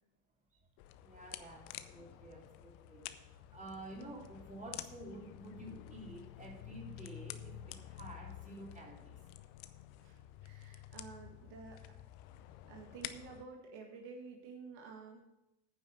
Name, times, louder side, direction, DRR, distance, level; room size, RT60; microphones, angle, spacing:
sound 1, 0.8-13.4, left 12 dB, 85° left, 0.7 m, -50 dB
voice 1, 1.0-9.3, right 1 dB, 20° right, -1 dB, 3.0 m, -51 dB
voice 2, 10.0-11.8 12.5-15.2, right 4 dB, 75° right, 1 dB, 1.7 m, -51 dB
9.5 x 5.5 x 6.7 m, 0.88 s
supercardioid pair, 80°, 41 cm